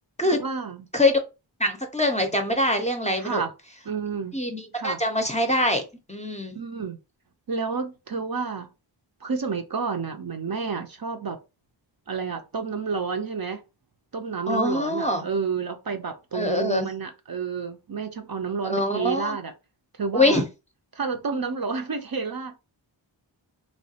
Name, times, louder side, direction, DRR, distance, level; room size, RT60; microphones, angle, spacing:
voice 1, 0.2-0.9 3.2-3.5 3.9-4.4 4.7-5.0 6.6-7.0 7.5-8.7 9.2-11.4 12.1-13.6 14.1-19.5 20.0-20.4 20.9-22.6, right 5 dB, 50° right, 0.5 m, -30 dB
voice 2, 1.6-3.4 4.3-5.8 6.1-6.6 14.5-15.3 16.3-16.9 18.6-19.4 20.1-20.4, left 1 dB, 15° left, 0.5 m, -23 dB
3.1 x 2.3 x 2.7 m
wide cardioid pair, 45°, 45 cm